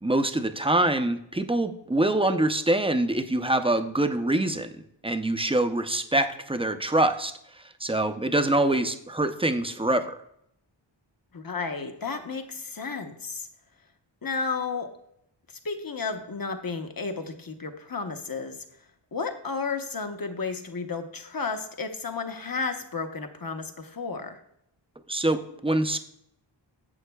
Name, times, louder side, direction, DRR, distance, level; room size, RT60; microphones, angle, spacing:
voice 1, 0.0-4.7 5.0-10.2 25.1-26.0, right 1 dB, 10° right, 8 dB, 0.5 m, -25 dB
voice 2, 11.3-13.5 14.2-14.9 15.6-18.6 19.1-24.4, left 4 dB, 50° left, 5 dB, 0.9 m, -32 dB
11.0 x 7.5 x 2.3 m, 0.76 s
wide cardioid pair, 60°, 46 cm